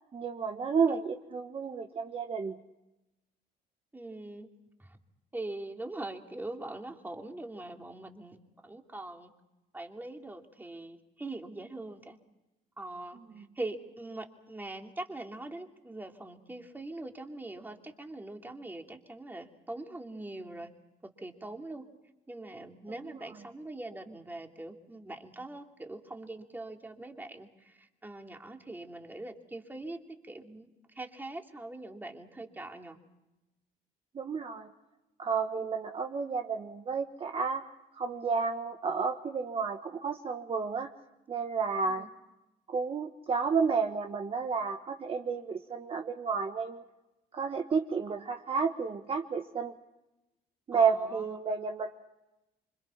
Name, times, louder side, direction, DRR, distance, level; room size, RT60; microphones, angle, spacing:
voice 1, 0.1-2.6 13.3-13.4 23.0-23.2 34.1-34.7 35.2-37.6 37.9-40.9 41.3-42.0 42.7-46.8 47.3-49.7 50.7-52.0, right 5 dB, 35° right, 4 dB, 1.4 m, -31 dB
voice 2, 3.9-4.5 4.8-5.0 5.3-9.3 9.7-12.2 12.8-20.7 21.0-21.8 22.3-30.0 30.2-30.7 30.9-33.0 41.8-42.1 50.7-51.4, right 2 dB, 10° right, 3 dB, 2.8 m, -42 dB
27.0 x 25.0 x 5.9 m, 0.97 s
cardioid pair, 110°, 17 cm